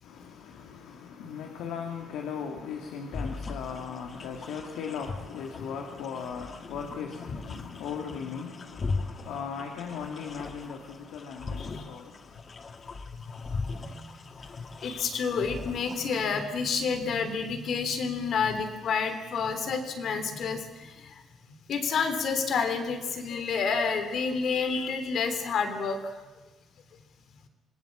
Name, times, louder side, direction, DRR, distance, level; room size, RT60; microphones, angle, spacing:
voice 1, 0.0-12.4, left 6 dB, 90° left, 2.4 m, -38 dB
sound 1, 3.1-16.2, left 3 dB, 35° left, 1.7 m, -40 dB
voice 2, 13.5-14.1 14.6-21.1 21.7-26.1, left 5 dB, 60° left, 3.4 m, -29 dB
26.0 x 18.5 x 7.5 m
cardioid pair, 100°, 0 cm